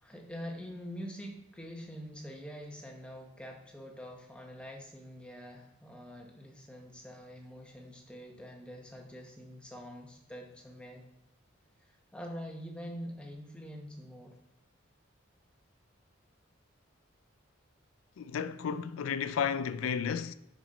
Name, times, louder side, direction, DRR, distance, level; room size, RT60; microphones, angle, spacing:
voice 1, 0.0-11.0 11.8-14.4, equal, 5° left, 0.9 m, -45 dB
voice 2, 18.2-20.3, left 7 dB, 90° left, 0.4 m, -32 dB
5.9 x 5.4 x 4.1 m
head